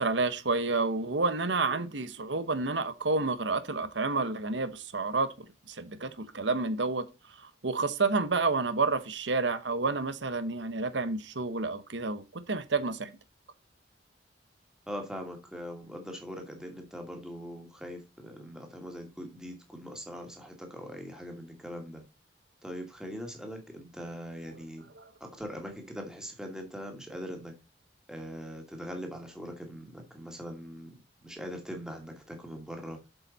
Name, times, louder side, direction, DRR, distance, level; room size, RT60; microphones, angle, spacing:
voice 1, 0.0-5.3 5.7-7.0 7.4-13.1 25.0-25.1, right 3 dB, 75° right, 1.0 m, -29 dB
voice 2, 14.9-22.0 22.6-24.8 25.2-27.5 28.1-33.0, equal, 5° right, 2.3 m, -41 dB
7.9 x 7.0 x 4.1 m
head